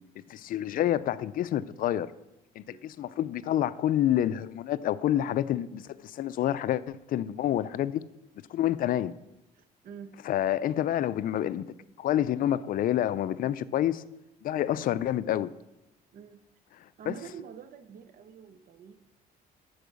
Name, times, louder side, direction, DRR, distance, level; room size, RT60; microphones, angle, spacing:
voice 1, 0.3-2.1 2.6-8.0 8.5-9.1 10.2-11.7 12.0-14.0 14.4-15.5 17.1-17.2, left 11 dB, 55° left, 0.5 m, -28 dB
voice 2, 9.5-10.2 16.1-16.4 17.0-19.0, right 7 dB, 55° right, 0.8 m, -46 dB
12.0 x 4.7 x 6.3 m
cardioid pair, 110°, 17 cm